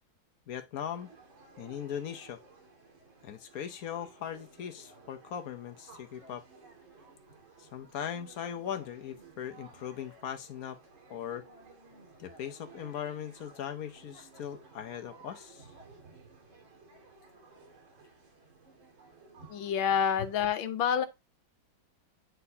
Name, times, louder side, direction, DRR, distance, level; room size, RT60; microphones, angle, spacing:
voice 1, 0.5-1.1 1.6-2.4 3.2-6.4 7.6-10.8 11.1-11.5 12.2-15.7, left 9 dB, 60° left, 1.0 m, -39 dB
sound 1, 0.9-20.5, right 3 dB, 75° right, 3.4 m, -56 dB
voice 2, 19.5-21.1, left 8 dB, 80° left, 1.6 m, -28 dB
9.6 x 4.1 x 2.7 m
omnidirectional pair, 2.2 m